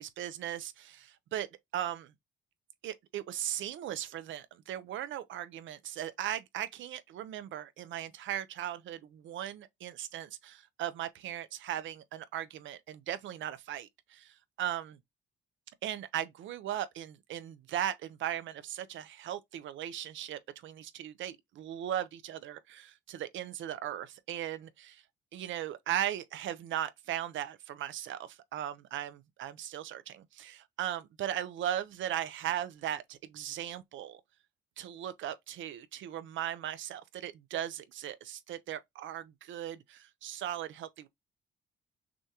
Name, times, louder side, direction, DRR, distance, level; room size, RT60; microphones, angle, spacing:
voice 1, 0.0-1.5 1.7-2.1 2.8-15.0 15.8-25.0 25.3-34.2 34.8-41.1, right 11 dB, 75° right, 0.6 m, -38 dB
6.1 x 2.4 x 2.8 m
cardioid pair, 90°, 20 cm